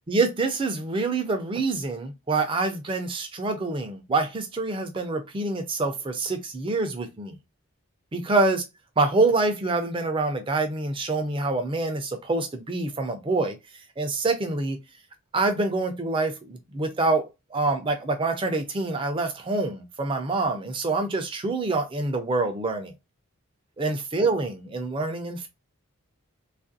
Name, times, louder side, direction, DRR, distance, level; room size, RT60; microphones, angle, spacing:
voice 1, 0.1-7.3 8.1-8.6 9.0-13.6 14.0-14.8 15.3-17.2 17.5-22.9 23.8-25.5, right 3 dB, 25° right, 0.4 m, -26 dB
3.2 x 2.4 x 2.5 m
head